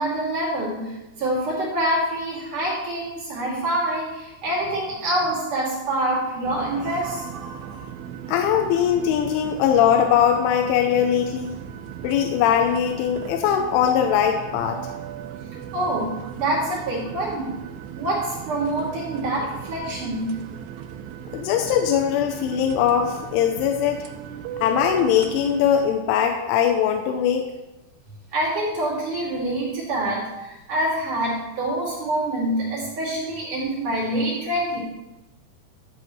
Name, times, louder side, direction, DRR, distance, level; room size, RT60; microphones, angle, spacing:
voice 1, 0.0-7.8 15.7-17.5 18.0-20.4 28.3-34.8, right 1 dB, 50° right, -6 dB, 3.7 m, -26 dB
sound 1, 6.4-25.9, right 9 dB, 85° right, 3.0 m, -37 dB
voice 2, 8.3-11.6 12.0-14.8 21.3-24.1 24.6-27.4, left 9 dB, 90° left, 4 dB, 3.1 m, -21 dB
13.5 x 8.0 x 3.1 m, 1.0 s
omnidirectional pair, 5.5 m